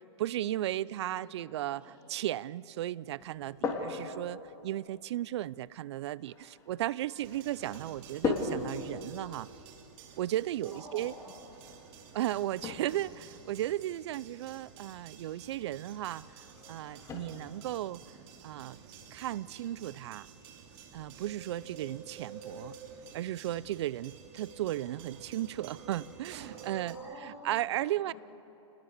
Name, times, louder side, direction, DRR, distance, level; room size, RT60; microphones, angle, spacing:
voice 1, 0.0-1.8 2.1-9.5 10.2-11.1 12.1-18.0 18.4-18.8 19.1-20.3 20.9-22.8 23.1-27.0 27.4-28.1, right 13 dB, 60° right, 0.6 m, -35 dB
voice 2, 0.8-2.1 3.4-3.7 10.6-11.8 26.8-28.1, equal, 10° right, 6.8 m, -50 dB
sound 1, 3.2-21.3, left 4 dB, 20° left, 3.3 m, -42 dB
sound 2, 7.2-27.0, right 6 dB, 45° right, 3.2 m, -51 dB
29.5 x 20.5 x 6.7 m
hypercardioid pair, 135°, 16 cm